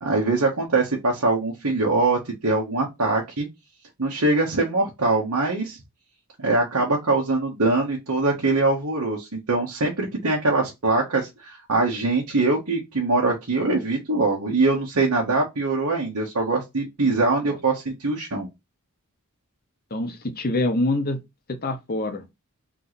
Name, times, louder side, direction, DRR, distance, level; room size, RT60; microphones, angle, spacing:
voice 1, 0.0-3.5 4.0-5.8 6.4-18.5, right 3 dB, 80° right, 1.3 m, -23 dB
voice 2, 19.9-21.2 21.6-22.3, left 1 dB, 45° left, 1.0 m, -25 dB
3.8 x 3.2 x 4.0 m
head